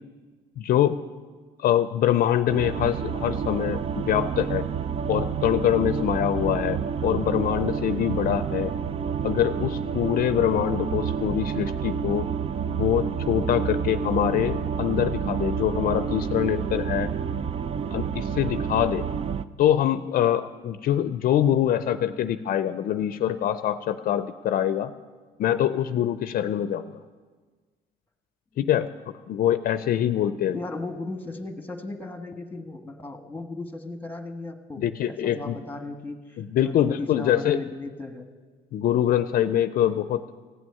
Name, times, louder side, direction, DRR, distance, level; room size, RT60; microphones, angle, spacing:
voice 1, 0.6-1.0 1.6-4.7 5.1-8.7 9.2-12.3 12.7-17.1 17.9-19.0 19.6-24.9 25.4-27.0 28.6-30.6 34.8-35.6 36.4-37.6 38.7-40.2, left 10 dB, 60° left, 12 dB, 0.5 m, -24 dB
sound 1, 2.5-19.4, right 7 dB, 35° right, 0.4 m, -29 dB
voice 2, 30.5-38.3, left 2 dB, 10° left, 6 dB, 1.3 m, -36 dB
16.0 x 6.2 x 9.4 m, 1.5 s
cardioid pair, 110°, 17 cm